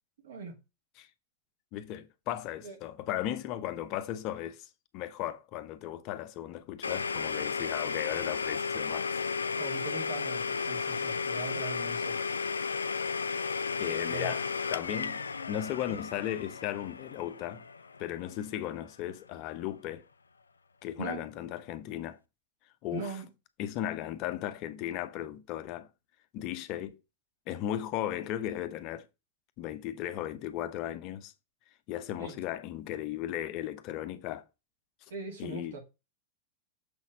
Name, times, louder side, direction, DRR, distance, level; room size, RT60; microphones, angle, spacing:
voice 1, 0.2-0.6 2.6-2.8 9.6-12.2 14.1-14.4 21.0-21.3 22.9-23.3 32.2-32.4 35.1-35.8, right 4 dB, 60° right, 2.4 m, -40 dB
voice 2, 1.7-9.1 13.8-15.2 15.5-17.6 18.0-20.1 20.8-22.2 22.8-23.1 23.6-25.9 26.3-27.0 27.5-29.1 29.6-31.3 31.9-34.4 35.4-35.8, left 12 dB, 40° left, 0.9 m, -36 dB
Domestic sounds home sounds, 6.8-18.5, left 5 dB, 75° left, 0.3 m, -34 dB
6.9 x 4.2 x 5.2 m
figure-of-eight pair, 90°, 0 cm